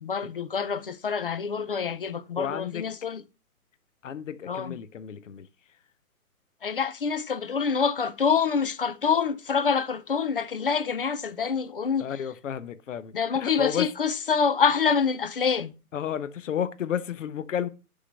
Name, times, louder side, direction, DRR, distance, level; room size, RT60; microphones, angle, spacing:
voice 1, 0.0-3.2 4.5-4.7 6.6-12.1 13.1-15.7, left 6 dB, 40° left, 0.4 m, -26 dB
voice 2, 2.4-2.8 4.0-5.5 12.0-13.1 13.4-13.9 15.9-17.7, left 9 dB, 55° left, 0.8 m, -32 dB
6.8 x 3.8 x 6.2 m
hypercardioid pair, 160°, 45 cm